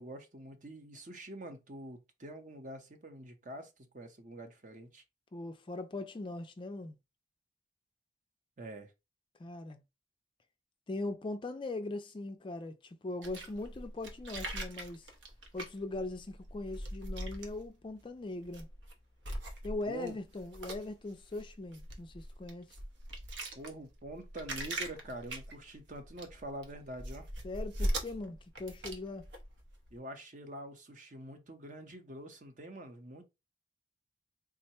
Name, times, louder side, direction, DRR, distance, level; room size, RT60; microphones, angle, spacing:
voice 1, 0.0-5.0 8.6-8.9 19.9-20.1 23.5-27.3 29.9-33.3, right 1 dB, 45° right, 0.8 m, -46 dB
voice 2, 5.3-7.0 9.4-9.8 10.9-15.1 15.5-18.7 19.6-22.7 27.4-29.3, left 2 dB, 25° left, 0.3 m, -40 dB
sound 1, 13.2-18.0 18.4-18.9 19.2-29.9, right 1 dB, 80° right, 0.9 m, -41 dB
3.6 x 2.1 x 4.2 m
head